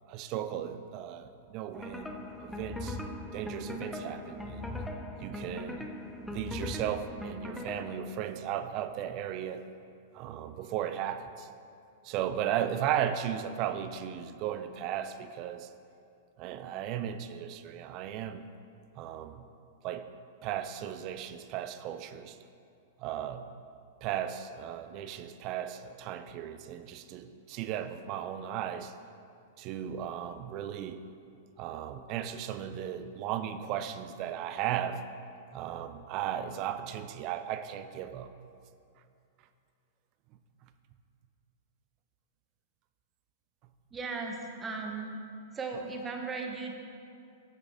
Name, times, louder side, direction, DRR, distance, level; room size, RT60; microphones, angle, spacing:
voice 1, 0.1-2.1 2.4-3.0 3.3-4.8 5.2-5.9 6.3-9.6 10.1-11.5 12.0-15.7 16.4-18.5 19.0-19.5 19.8-20.1 20.4-22.4 23.0-23.5 24.0-28.9 29.6-31.0 31.6-35.0 35.5-38.3, right 10 dB, 45° right, 10 dB, 0.4 m, -36 dB
sound 1, 1.7-8.0, left 1 dB, 5° left, 0.6 m, -39 dB
voice 2, 43.9-45.2 45.5-46.7, right 4 dB, 20° right, 2 dB, 0.9 m, -37 dB
8.2 x 5.9 x 3.5 m, 2.5 s
hypercardioid pair, 130°, 0 cm